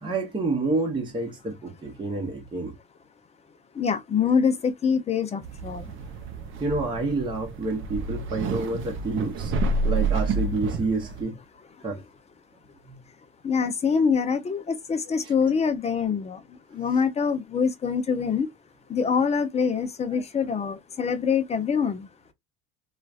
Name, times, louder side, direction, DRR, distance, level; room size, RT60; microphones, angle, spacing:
voice 1, 0.0-2.7 6.6-9.5 9.8-11.4 11.8-12.0 12.9-13.0, right 3 dB, 15° right, 1.0 m, -28 dB
voice 2, 3.8-5.8 13.4-14.6 14.9-16.4 16.7-18.5 18.9-22.1, left 6 dB, 20° left, 0.6 m, -24 dB
sound 1, 5.4-11.2, right 3 dB, 40° right, 0.6 m, -29 dB
3.0 x 2.4 x 2.3 m
supercardioid pair, 110°, 31 cm